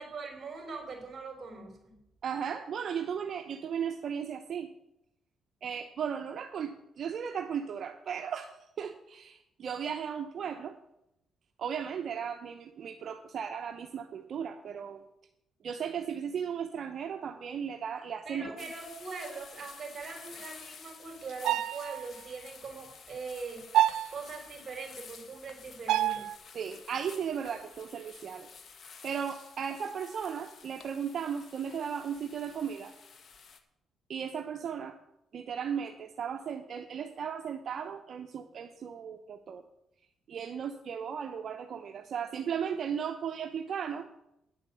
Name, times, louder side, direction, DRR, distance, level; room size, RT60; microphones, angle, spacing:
voice 1, 0.0-2.0 18.2-23.7 24.1-26.3, right 4 dB, 40° right, 4 dB, 3.9 m, -42 dB
voice 2, 2.2-4.7 5.6-10.8 11.6-15.0 15.6-18.5 26.5-28.5 29.0-32.9 34.1-35.0 35.3-39.6 40.3-44.1, right 7 dB, 55° right, 6 dB, 0.8 m, -36 dB
sound 1, 18.6-33.6, left 6 dB, 55° left, 1.3 m, -51 dB
sound 2, 21.3-22.1 23.7-24.1 25.9-26.3, right 13 dB, 85° right, 0.4 m, -26 dB
10.0 x 7.3 x 7.5 m, 0.85 s
cardioid pair, 90°, 0 cm